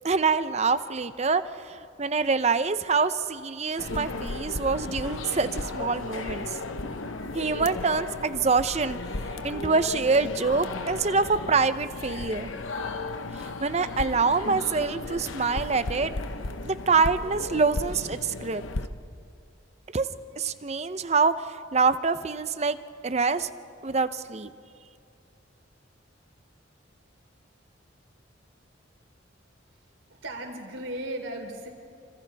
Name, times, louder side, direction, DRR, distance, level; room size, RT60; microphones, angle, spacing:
voice 1, 0.0-6.6 7.3-9.0 9.4-12.5 13.6-16.1 16.6-18.6 19.9-20.1 20.4-21.3 21.7-22.8 23.0-23.5 23.8-24.5, right 4 dB, 35° right, 12 dB, 0.6 m, -25 dB
sound 1, 3.8-18.9, left 2 dB, 85° left, 0.9 m, -35 dB
voice 2, 30.1-31.7, right 1 dB, 80° right, 2 dB, 3.6 m, -36 dB
29.5 x 25.5 x 3.4 m, 2.5 s
head